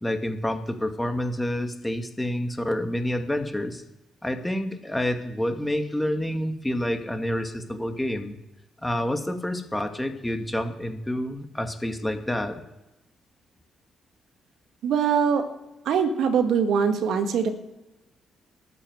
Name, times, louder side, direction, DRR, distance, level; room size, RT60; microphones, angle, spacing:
voice 1, 0.0-3.8 4.2-8.4 8.8-12.6, left 1 dB, 10° left, 6 dB, 2.3 m, -28 dB
voice 2, 14.8-15.5 15.9-17.5, right 6 dB, 70° right, 7 dB, 1.8 m, -22 dB
13.5 x 9.0 x 8.1 m, 1.0 s
hypercardioid pair, 45°, 0 cm